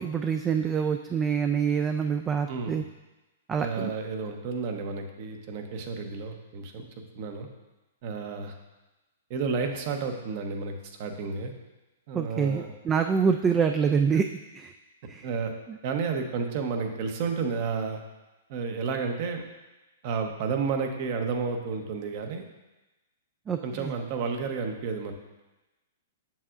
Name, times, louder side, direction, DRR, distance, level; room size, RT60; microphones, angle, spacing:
voice 1, 0.0-2.8 3.5-3.9 12.1-14.3 14.5-14.7 15.1-15.3 15.7-15.8 23.5-23.9, right 6 dB, 20° right, 6 dB, 0.3 m, -26 dB
voice 2, 2.5-2.8 3.6-6.9 7.1-7.5 8.0-8.5 9.3-11.5 12.1-12.7 15.2-15.5 15.8-18.0 18.5-19.4 20.0-22.5 23.6-25.1, right 5 dB, 50° right, 5 dB, 0.9 m, -31 dB
7.3 x 6.8 x 2.5 m, 1.1 s
hypercardioid pair, 130°, 0 cm